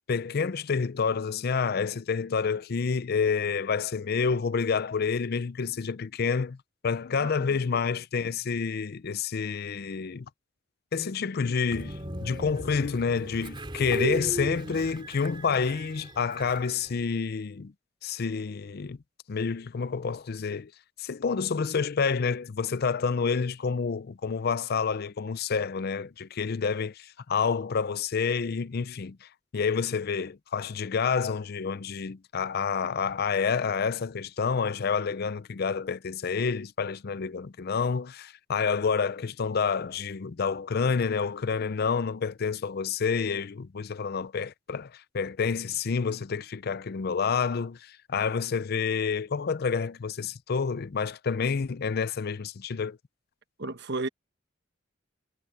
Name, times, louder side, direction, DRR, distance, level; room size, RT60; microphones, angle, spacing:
voice 1, 0.1-6.6 6.8-10.3 10.9-17.7 18.0-19.0 19.3-20.7 21.0-53.0, left 5 dB, 55° left, 0.5 m, -28 dB
Train, 11.7-17.0, right 1 dB, 25° right, 2.7 m, -36 dB
voice 2, 53.6-54.1, right 3 dB, 60° right, 1.3 m, -33 dB
head